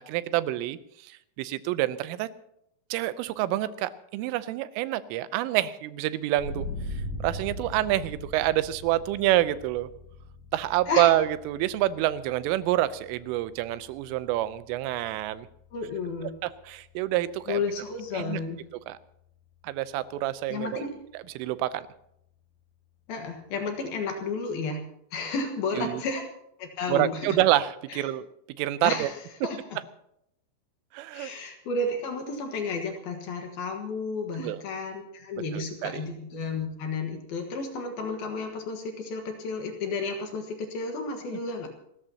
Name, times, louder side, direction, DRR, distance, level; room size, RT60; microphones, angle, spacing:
voice 1, 0.0-2.3 2.9-6.7 7.2-9.9 10.5-15.5 16.4-17.6 18.1-18.4 18.9-19.0 19.6-20.8 21.1-21.9 25.8-26.0 26.9-28.3 28.6-29.1 30.9-31.4 34.4-34.6 35.5-36.1, right 14 dB, 90° right, 14 dB, 3.3 m, -27 dB
sound 1, 6.4-17.6, left 1 dB, 40° left, 4.7 m, -41 dB
voice 2, 15.7-16.3 17.5-18.6 20.5-20.9 23.1-24.8 25.1-26.3 26.6-27.4 27.9-28.0 28.8-29.2 29.4-29.6 31.1-41.7, left 3 dB, 60° left, 4 dB, 2.9 m, -32 dB
28.5 x 14.0 x 2.9 m, 0.76 s
omnidirectional pair, 5.6 m